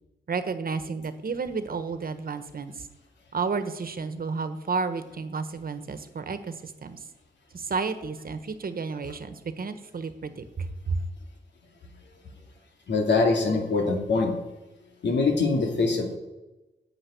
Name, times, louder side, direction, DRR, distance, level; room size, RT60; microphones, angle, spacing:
voice 1, 0.3-2.9 3.3-7.0 7.5-11.0, right 4 dB, 55° right, 10 dB, 1.3 m, -31 dB
voice 2, 12.9-14.3 15.0-16.1, left 3 dB, 90° left, 3 dB, 2.4 m, -23 dB
11.0 x 7.7 x 9.3 m, 1.1 s
wide cardioid pair, 110°, 18 cm